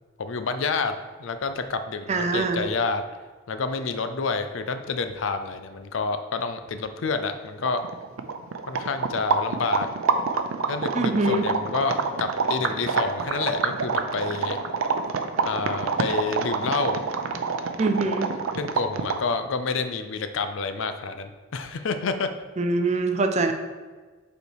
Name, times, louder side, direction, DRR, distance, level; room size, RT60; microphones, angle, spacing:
voice 1, 0.2-3.0 3.5-7.8 8.7-9.9 10.7-14.6 15.4-17.0 18.6-22.3, left 4 dB, 70° left, 9 dB, 0.5 m, -28 dB
voice 2, 2.1-2.7 10.9-11.5 17.8-18.3 22.6-23.5, right 3 dB, 35° right, 6 dB, 0.5 m, -24 dB
sound 1, 7.3-7.4 7.6-19.3, right 5 dB, 85° right, 0.5 m, -27 dB
5.3 x 4.4 x 4.7 m, 1.4 s
head